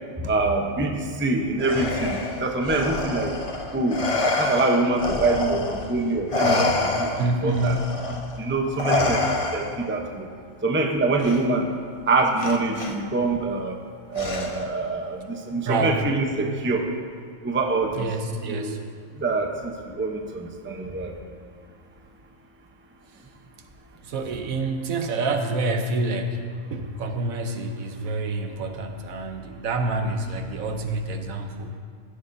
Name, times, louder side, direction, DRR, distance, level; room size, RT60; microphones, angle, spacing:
voice 1, 0.2-3.3 3.7-4.0 4.2-6.7 7.0-7.7 8.4-9.2 9.5-10.3 10.6-11.7 12.1-13.8 14.1-16.9 17.4-18.1 18.5-18.7 19.2-21.1, right 3 dB, 10° right, 2 dB, 0.6 m, -25 dB
Respiratory sounds, 1.6-5.9 6.3-9.9 11.2-11.4 12.4-12.9 14.1-14.8, left 2 dB, 35° left, 0.6 m, -27 dB
voice 2, 7.2-8.1 15.7-16.1 17.9-18.8 24.0-26.4 26.7-31.7, right 2 dB, 70° right, 5 dB, 1.2 m, -27 dB
15.5 x 12.0 x 2.7 m, 2.1 s
omnidirectional pair, 1.5 m